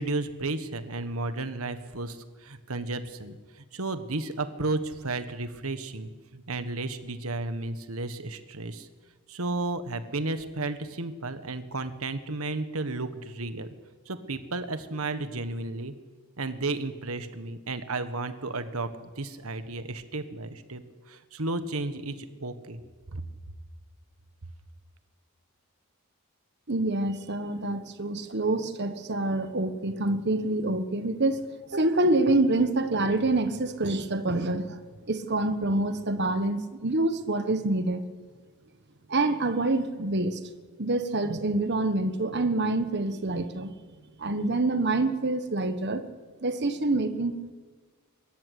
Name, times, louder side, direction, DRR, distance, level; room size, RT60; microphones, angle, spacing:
voice 1, 0.0-8.9 9.3-13.7 14.1-15.9 16.4-20.8 21.1-22.8 23.1-23.2, right 2 dB, 70° right, 10 dB, 1.5 m, -33 dB
voice 2, 26.7-34.8 35.1-38.0 39.1-40.4 40.8-43.7 44.2-46.1 46.4-47.3, right 2 dB, 50° right, 9 dB, 1.4 m, -26 dB
23.5 x 13.5 x 9.6 m, 1.4 s
head